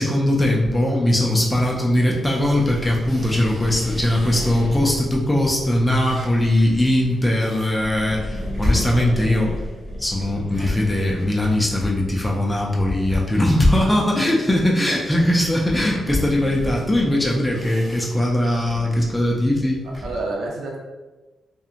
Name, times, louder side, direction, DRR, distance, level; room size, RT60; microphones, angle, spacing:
voice 1, 0.0-9.5 10.0-19.8, left 1 dB, 10° left, -2 dB, 0.3 m, -20 dB
sound 1, 0.5-5.0 5.5-20.2, left 1 dB, 25° right, 0.6 m, -34 dB
sound 2, 2.3-6.7 7.6-11.3, equal, 55° left, 0.7 m, -33 dB
voice 2, 14.9-15.2 20.0-20.8, right 2 dB, 70° right, -1 dB, 0.6 m, -29 dB
2.8 x 2.5 x 2.4 m, 1.2 s
wide cardioid pair, 160°, 0 cm